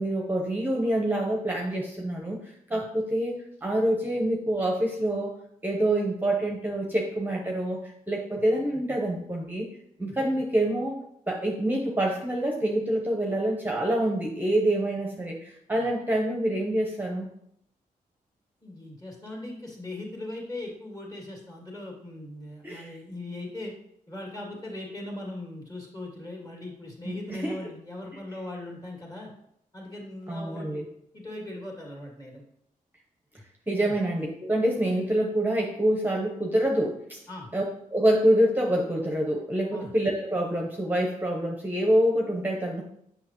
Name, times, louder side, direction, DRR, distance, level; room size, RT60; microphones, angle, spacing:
voice 1, 0.0-5.3 5.6-9.7 10.0-11.0 11.3-17.3 22.6-22.9 27.0-27.6 30.3-30.9 33.7-37.2 37.5-37.6 37.9-42.8, right 1 dB, 10° right, 0 dB, 0.9 m, -26 dB
voice 2, 18.6-23.7 24.1-29.3 29.7-30.9 31.1-32.4 33.8-33.9 37.3-37.5 39.7-39.9, left 2 dB, 25° left, -1 dB, 2.3 m, -39 dB
6.4 x 5.7 x 3.0 m, 0.73 s
cardioid pair, 70°, 15 cm